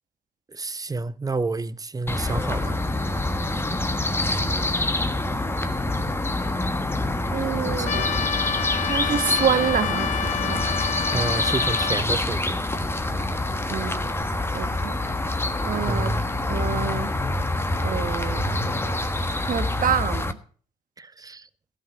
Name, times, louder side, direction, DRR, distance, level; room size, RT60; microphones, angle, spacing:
voice 1, 0.5-2.8 7.8-7.9 11.1-12.6 15.7-16.2 21.0-21.5, right 3 dB, 20° right, 0.8 m, -29 dB
sound 1, 2.1-20.3, left 2 dB, 10° left, 1.3 m, -26 dB
voice 2, 7.3-8.1 8.9-10.6 13.7-14.1 14.5-15.0 15.6-16.1 16.5-17.1 17.8-18.5 19.4-20.3, right 8 dB, 45° right, 1.5 m, -27 dB
Trumpet, 7.9-12.0, left 9 dB, 40° left, 0.5 m, -29 dB
15.5 x 5.7 x 8.9 m
hypercardioid pair, 55°, 20 cm